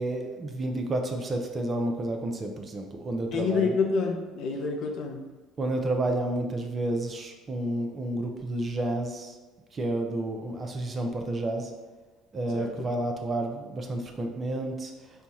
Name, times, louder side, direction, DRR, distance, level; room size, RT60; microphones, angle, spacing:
voice 1, 0.0-3.7 5.6-9.4 9.7-11.7 12.3-14.9, right 1 dB, 35° right, 3 dB, 0.7 m, -30 dB
voice 2, 3.3-5.2 12.5-12.9, left 4 dB, 60° left, 2 dB, 0.7 m, -28 dB
4.4 x 2.3 x 4.1 m, 1.3 s
hypercardioid pair, 65°, 0 cm